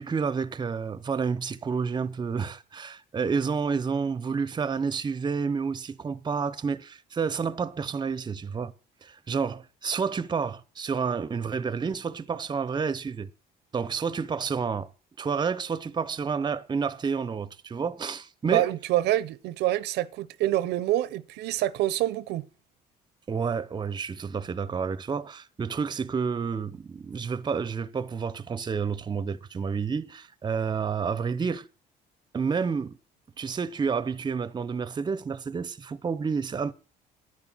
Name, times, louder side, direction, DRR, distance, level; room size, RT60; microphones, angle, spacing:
voice 1, 0.0-8.7 9.0-13.3 13.7-14.9 15.2-18.7 23.3-31.6 32.3-33.0 33.4-36.7, right 5 dB, 25° right, 0.7 m, -30 dB
voice 2, 18.4-22.4, right 14 dB, 80° right, 0.7 m, -26 dB
10.5 x 9.9 x 6.1 m
cardioid pair, 110°, 17 cm